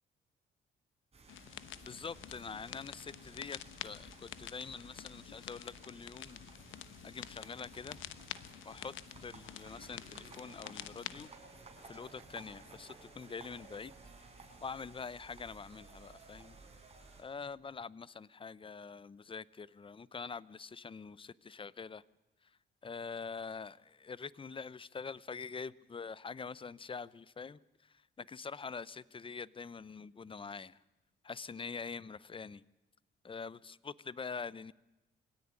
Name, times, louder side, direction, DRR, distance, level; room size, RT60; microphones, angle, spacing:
sound 1, 1.1-17.2, right 3 dB, 30° right, 7.2 m, -56 dB
sound 2, 1.3-11.3, left 12 dB, 85° left, 1.0 m, -49 dB
voice 1, 1.9-6.4 7.0-8.0 8.6-8.9 9.2-11.3 11.9-13.9 14.6-16.6 17.2-22.0 22.8-30.8 31.2-32.6 33.2-34.7, left 5 dB, 25° left, 20 dB, 0.8 m, -45 dB
25.0 x 17.0 x 9.8 m, 1.0 s
cardioid pair, 90°, 20 cm